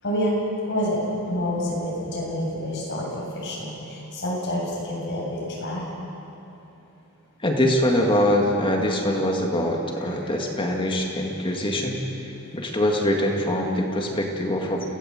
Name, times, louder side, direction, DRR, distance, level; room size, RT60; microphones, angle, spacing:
voice 1, 0.0-0.3 0.7-5.9 10.2-10.3 13.9-14.0, left 1 dB, 55° left, -4 dB, 8.0 m, -28 dB
voice 2, 7.4-14.8, left 1 dB, 25° left, 1 dB, 2.1 m, -23 dB
28.5 x 17.5 x 7.9 m, 3.0 s
head